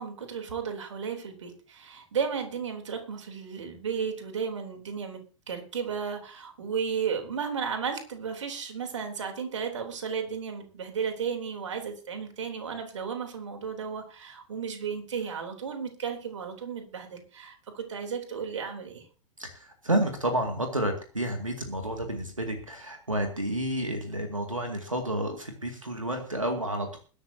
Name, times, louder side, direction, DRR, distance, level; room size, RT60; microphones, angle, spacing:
voice 1, 0.0-5.2 5.5-19.1, right 6 dB, 65° right, 4 dB, 3.4 m, -34 dB
voice 2, 19.4-27.0, right 1 dB, 85° right, 5 dB, 2.2 m, -30 dB
21.0 x 11.5 x 2.8 m, 0.38 s
figure-of-eight pair, 95°, 16 cm